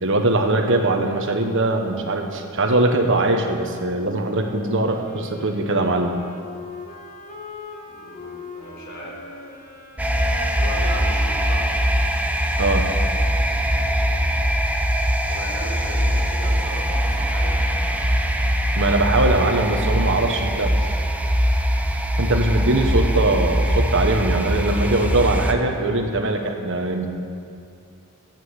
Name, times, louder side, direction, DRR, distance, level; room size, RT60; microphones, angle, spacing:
voice 1, 0.0-6.1 12.6-12.9 18.8-20.9 22.2-27.1, right 2 dB, 60° right, 4 dB, 1.4 m, -21 dB
Wind instrument woodwind instrument, 4.0-12.3, left 3 dB, 35° left, 1.8 m, -41 dB
voice 2, 7.9-9.2 10.6-11.7 15.3-17.6, left 1 dB, 55° left, -3 dB, 4.0 m, -37 dB
sound 1, 10.0-25.5, equal, 5° right, 0.8 m, -22 dB
14.5 x 9.0 x 8.1 m, 2.5 s
head